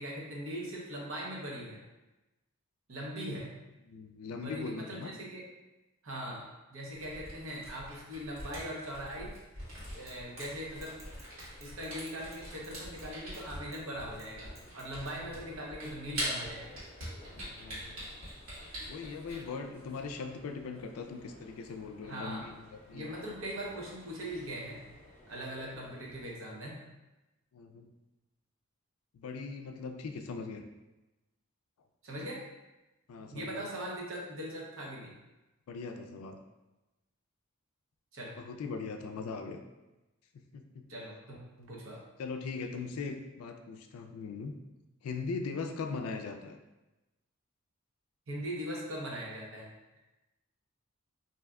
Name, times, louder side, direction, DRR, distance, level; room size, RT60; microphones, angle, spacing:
voice 1, 0.0-1.8 2.9-3.5 4.4-5.4 6.0-9.3 9.9-11.1 11.6-16.8 22.0-22.5 22.9-24.8 25.3-26.8 32.0-32.4 33.3-35.1 38.1-38.3 40.9-42.0 48.3-49.7, equal, 65° right, -3 dB, 0.7 m, -40 dB
voice 2, 3.8-5.1 17.3-18.1 18.9-23.1 27.5-27.9 29.1-30.6 33.1-33.6 35.7-36.4 38.4-39.6 40.3-40.9 42.2-44.6 45.0-46.6, left 4 dB, 85° left, 5 dB, 0.3 m, -40 dB
Camera, 6.9-19.4, right 1 dB, 85° right, 1.4 m, -44 dB
sound 1, 9.6-26.3, left 1 dB, 35° left, 0.7 m, -56 dB
Bicycle / Mechanisms, 10.1-10.5 10.8-13.4 13.7-13.8 14.2-15.2, right 1 dB, 15° right, 0.4 m, -57 dB
2.6 x 2.2 x 3.5 m, 1.0 s
head